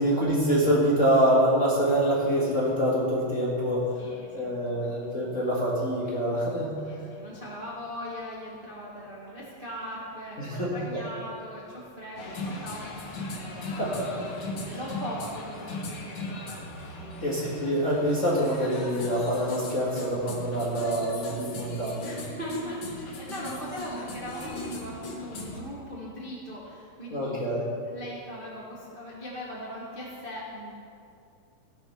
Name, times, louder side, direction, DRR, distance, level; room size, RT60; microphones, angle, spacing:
voice 1, 0.0-3.9 4.3-6.7 10.4-11.0 13.8-14.3 14.6-14.8 17.2-22.2 27.1-27.6, equal, 30° left, -6 dB, 1.8 m, -25 dB
voice 2, 4.0-5.3 6.8-13.9 14.6-16.0 16.3-16.6 17.0-17.6 22.0-30.7, equal, 25° right, -6 dB, 1.2 m, -40 dB
sound 1, 12.2-25.6, left 2 dB, 50° left, 1.9 m, -38 dB
16.0 x 7.9 x 5.8 m, 2.5 s
omnidirectional pair, 3.7 m